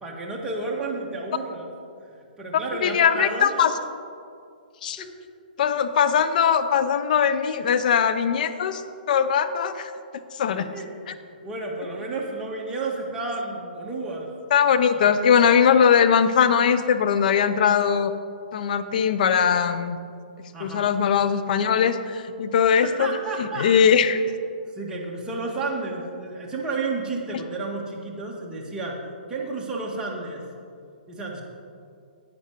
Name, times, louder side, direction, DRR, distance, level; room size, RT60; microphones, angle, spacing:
voice 1, 0.0-1.7 2.0-3.7 5.0-5.1 10.6-10.9 11.1-14.3 14.9-15.1 20.5-20.9 22.7-24.0 24.7-29.0 29.3-30.5 31.1-31.4, right 3 dB, 15° right, -3 dB, 1.8 m, -32 dB
voice 2, 2.8-3.7 4.8-5.0 5.6-8.8 9.1-9.9 10.3-10.7 11.1-11.2 14.5-18.1 18.5-20.0 20.6-23.1 23.4-24.2, left 7 dB, 60° left, 10 dB, 0.7 m, -20 dB
10.5 x 8.9 x 4.6 m, 2.3 s
hypercardioid pair, 130°, 5 cm